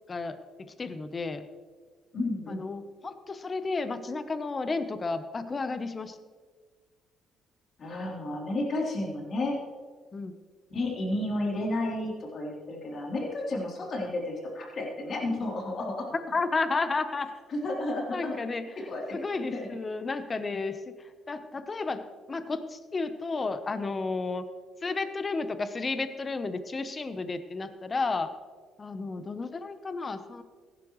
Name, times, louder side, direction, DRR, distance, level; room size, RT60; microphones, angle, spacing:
voice 1, 0.1-1.5 2.5-6.2 10.1-10.3 16.3-17.3 18.1-18.7 19.1-20.9 21.3-24.4 24.8-28.3 28.8-30.4, left 3 dB, 35° left, 10 dB, 0.9 m, -32 dB
voice 2, 2.1-2.6 7.8-9.6 10.7-16.1 17.5-18.4 18.9-19.2 19.5-19.7, left 2 dB, 55° left, -2 dB, 3.5 m, -32 dB
16.0 x 11.0 x 3.2 m, 1.5 s
supercardioid pair, 75°, 0 cm